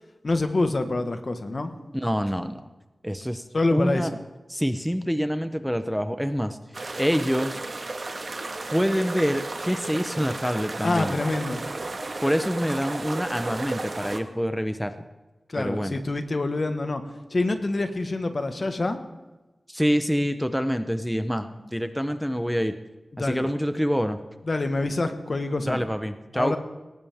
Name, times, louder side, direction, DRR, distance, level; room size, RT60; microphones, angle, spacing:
voice 1, 0.2-1.7 3.5-4.1 10.8-11.6 15.5-17.0 17.3-19.0 23.1-23.4 24.4-25.8 26.3-26.6, left 2 dB, 50° left, 7 dB, 1.5 m, -26 dB
voice 2, 1.9-2.6 3.0-3.4 3.7-4.1 4.5-6.6 7.0-7.6 8.7-11.1 12.2-15.0 15.6-16.0 19.7-22.8 23.2-24.2 25.7-26.6, equal, ahead, 9 dB, 0.8 m, -26 dB
sound 1, 6.7-14.2, right 2 dB, 50° right, 1.6 m, -33 dB
20.0 x 18.5 x 3.6 m, 1.1 s
wide cardioid pair, 90°, 0 cm